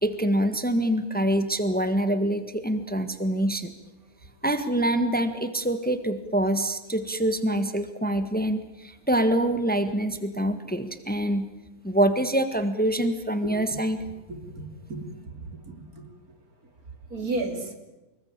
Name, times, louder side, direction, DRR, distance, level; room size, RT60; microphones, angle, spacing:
voice 1, 0.0-3.7 4.4-11.5 11.8-14.0, right 1 dB, 5° left, 10 dB, 1.6 m, -25 dB
voice 2, 14.3-15.1 15.4-16.1 17.1-17.7, right 2 dB, 75° right, 6 dB, 3.7 m, -33 dB
26.0 x 21.5 x 9.0 m, 1.0 s
omnidirectional pair, 1.5 m